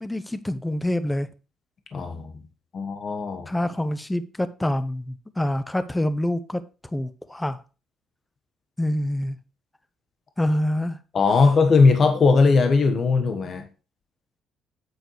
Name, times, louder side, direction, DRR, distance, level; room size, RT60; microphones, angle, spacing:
voice 1, 0.0-1.3 3.5-6.6 6.9-7.6 8.8-9.4 10.4-11.0, left 1 dB, 10° left, 0.8 m, -26 dB
voice 2, 1.9-2.3 2.7-3.5 11.1-13.6, left 4 dB, 45° left, 1.3 m, -19 dB
9.0 x 8.2 x 3.1 m
cardioid pair, 100°, 0 cm